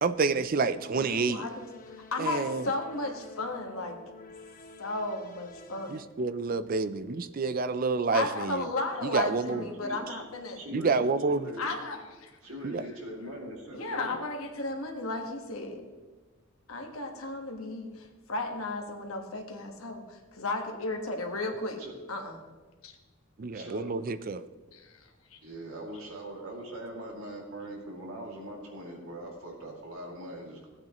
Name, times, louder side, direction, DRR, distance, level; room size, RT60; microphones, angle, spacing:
voice 1, 0.0-1.4 2.2-2.7 5.9-8.6 9.0-9.6 10.7-11.5 12.6-12.8 23.4-24.4, right 4 dB, 40° right, 13 dB, 0.4 m, -28 dB
voice 2, 1.0-4.0 4.8-6.0 8.1-10.6 11.6-12.3 13.7-15.8 16.7-21.8 22.1-22.4 22.8-23.0 24.7-25.4, left 2 dB, 85° left, 3 dB, 1.4 m, -35 dB
sound 1, 1.0-6.0, left 3 dB, 40° left, 1.0 m, -50 dB
voice 3, 9.5-10.2 10.5-11.7 12.4-14.2 21.8-21.9 23.5-24.0 25.4-30.7, right 1 dB, 80° right, -1 dB, 2.4 m, -41 dB
15.5 x 8.7 x 3.0 m, 1.3 s
head